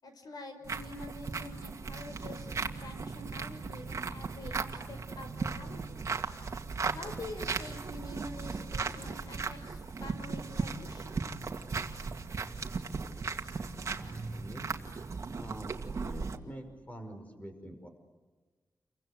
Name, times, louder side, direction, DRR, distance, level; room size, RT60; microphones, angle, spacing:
voice 1, 0.0-6.1 6.9-11.4, left 2 dB, 75° left, 7 dB, 5.6 m, -46 dB
sound 1, 0.6-16.4, right 4 dB, 45° right, 2.2 m, -37 dB
voice 2, 13.9-14.7 15.3-15.7 16.0-17.9, right 1 dB, 20° left, 6 dB, 5.5 m, -45 dB
30.0 x 24.5 x 8.0 m, 1.3 s
wide cardioid pair, 125°, 7 cm